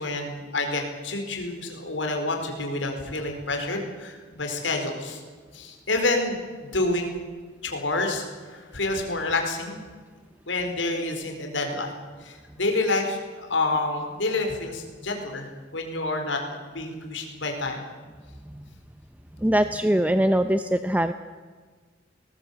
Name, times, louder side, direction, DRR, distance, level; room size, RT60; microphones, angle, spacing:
voice 1, 0.0-5.2 5.5-7.1 7.6-9.8 10.5-11.9 12.2-16.4 16.7-17.8, left 2 dB, 80° left, 3 dB, 4.6 m, -28 dB
voice 2, 19.4-21.1, right 1 dB, 10° right, 10 dB, 0.6 m, -22 dB
21.0 x 19.0 x 8.3 m, 1.5 s
head